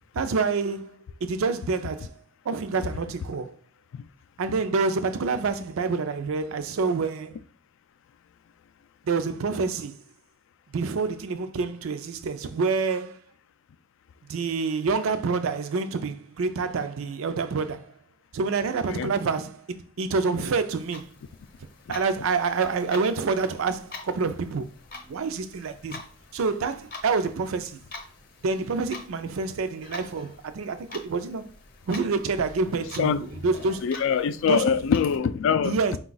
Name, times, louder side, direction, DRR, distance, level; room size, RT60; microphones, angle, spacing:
voice 1, 0.1-2.1 2.4-3.6 4.4-7.4 9.0-10.0 10.7-13.2 14.2-18.0 18.3-21.1 21.9-24.7 25.1-26.0 26.3-27.8 28.4-31.5 31.9-33.9 34.5-34.6 35.6-36.0, right 4 dB, 80° right, 0.4 m, -27 dB
Clock, 20.7-35.2, left 2 dB, 45° left, 0.7 m, -45 dB
voice 2, 33.8-35.7, left 6 dB, 65° left, 0.3 m, -24 dB
4.7 x 2.3 x 3.9 m
head